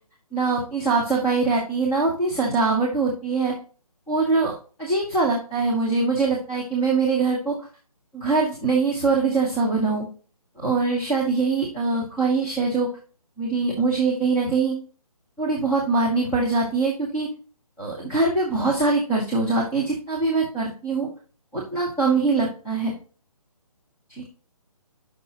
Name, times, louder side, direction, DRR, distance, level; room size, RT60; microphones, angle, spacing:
voice 1, 0.3-3.5 4.1-4.5 4.8-7.5 8.1-10.0 10.6-12.9 13.4-14.8 15.4-17.3 17.8-21.1 21.5-22.9 24.2-24.3, right 3 dB, 5° left, -5 dB, 0.7 m, -23 dB
12.0 x 5.8 x 2.8 m, 0.39 s
hypercardioid pair, 170°, 19 cm